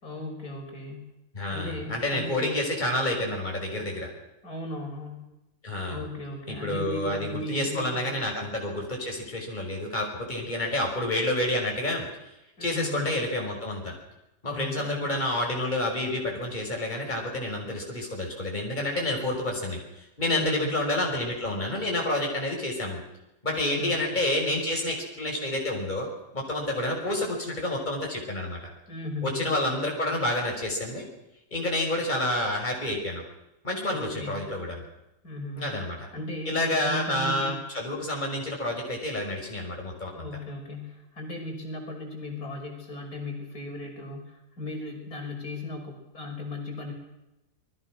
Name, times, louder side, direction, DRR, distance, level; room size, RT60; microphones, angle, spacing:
voice 1, 0.0-1.1 1.5-2.5 4.4-5.3 5.9-8.2 12.6-13.2 14.5-15.2 20.3-20.8 23.5-24.2 28.9-29.6 33.9-34.5 35.2-35.8 36.1-37.6 40.1-46.9, left 2 dB, 60° left, 1 dB, 6.3 m, -37 dB
voice 2, 1.3-4.1 5.6-6.0 6.5-12.0 12.6-13.9 14.4-23.0 23.4-26.1 26.3-28.6 29.2-31.0 31.5-33.2 33.6-34.8 35.6-36.1 36.5-40.3, left 1 dB, 25° left, 0 dB, 6.1 m, -29 dB
29.0 x 21.5 x 6.4 m, 0.90 s
omnidirectional pair, 1.8 m